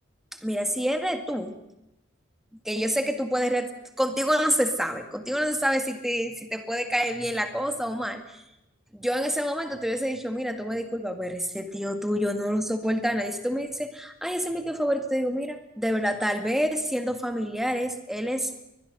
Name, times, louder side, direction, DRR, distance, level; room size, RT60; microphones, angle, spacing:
voice 1, 0.4-1.6 2.7-3.7 4.0-8.2 8.9-18.5, equal, ahead, 6 dB, 1.8 m, -27 dB
22.5 x 21.0 x 6.6 m, 0.89 s
head